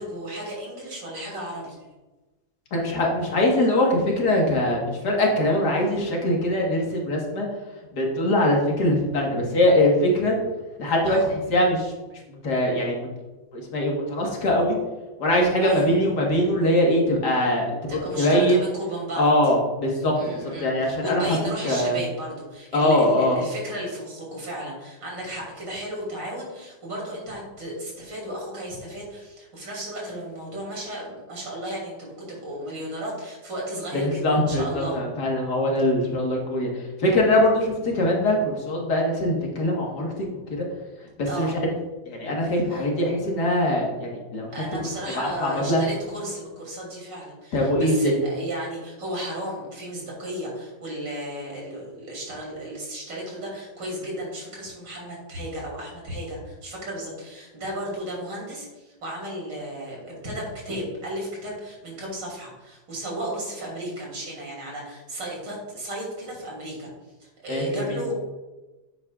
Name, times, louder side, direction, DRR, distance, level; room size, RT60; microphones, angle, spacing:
voice 1, 0.0-1.8 11.0-11.3 15.6-15.9 17.9-19.3 20.1-35.0 41.3-41.6 42.7-42.8 44.5-66.9 67.2-68.1, right 1 dB, 75° right, -3 dB, 3.6 m, -34 dB
voice 2, 2.7-7.5 7.9-10.4 10.8-11.9 12.4-13.1 13.5-14.8 15.2-18.6 19.2-21.4 21.6-22.0 22.7-23.4 33.9-40.7 41.2-41.6 42.1-44.5 45.2-45.9 47.5-48.1 67.5-68.0, left 1 dB, 65° left, -1 dB, 2.1 m, -22 dB
9.6 x 8.3 x 2.4 m, 1.1 s
omnidirectional pair, 2.0 m